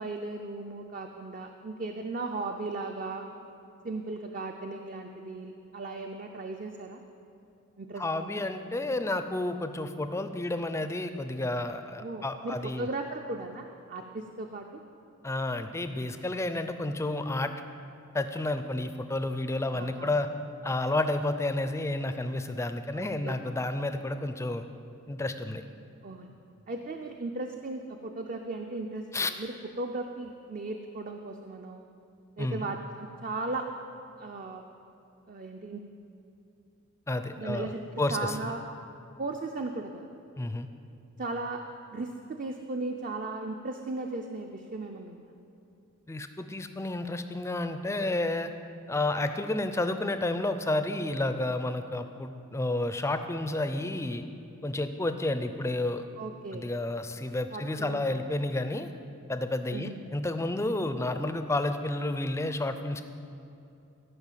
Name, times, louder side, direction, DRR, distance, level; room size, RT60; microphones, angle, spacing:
voice 1, 0.0-3.3 3.8-7.0 7.8-8.4 12.0-14.8 19.7-20.1 22.9-23.3 26.0-26.3 26.7-31.8 32.4-33.7 34.2-34.6 35.3-35.8 37.4-38.6 39.2-40.1 41.2-41.6 41.9-45.3 56.2-56.7 57.5-58.3 59.7-60.0, right 2 dB, 40° right, 4 dB, 0.5 m, -37 dB
voice 2, 8.0-12.9 15.2-17.5 18.1-20.3 20.6-24.6 25.1-25.6 29.1-29.3 32.4-32.7 37.1-38.5 40.4-40.7 46.1-48.5 48.9-54.2 54.6-56.0 56.5-58.9 59.3-63.0, left 2 dB, 15° left, 9 dB, 0.4 m, -31 dB
14.5 x 5.6 x 7.4 m, 2.6 s
head